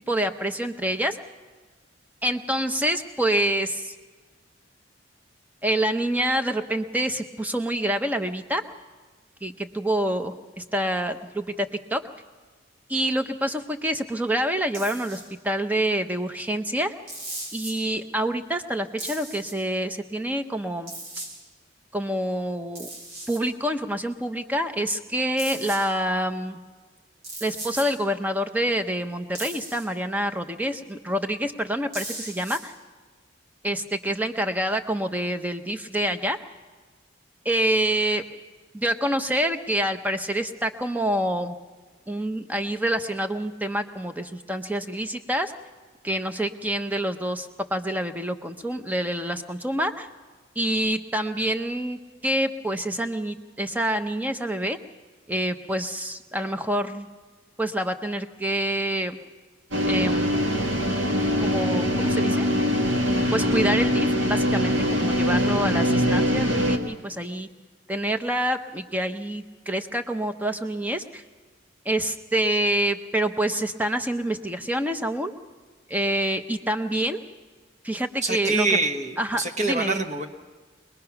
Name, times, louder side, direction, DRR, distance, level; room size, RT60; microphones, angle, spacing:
voice 1, 0.1-1.2 2.2-3.9 5.6-8.6 9.4-12.0 12.9-16.9 17.5-20.9 21.9-22.9 23.3-26.6 27.4-32.7 33.6-36.4 37.4-38.2 38.7-41.6 42.1-45.5 46.0-50.1 50.6-54.8 55.3-57.1 57.6-59.2 59.8-60.4 61.4-62.4 63.3-67.5 67.9-71.2 71.8-75.3 75.9-77.2 77.8-78.7 79.2-80.0, right 1 dB, 10° right, 7 dB, 0.8 m, -27 dB
sound 1, 14.7-15.3 17.1-17.8 19.0-19.5 20.9-21.3 22.8-23.4 25.4-25.8 27.2-27.9 29.3-29.9 31.9-32.6, right 2 dB, 85° right, 6.3 m, -37 dB
sound 2, 59.7-66.8, equal, 70° right, 2.0 m, -23 dB
voice 2, 78.2-80.3, right 3 dB, 35° right, 6 dB, 1.2 m, -25 dB
23.5 x 20.0 x 5.9 m, 1.4 s
head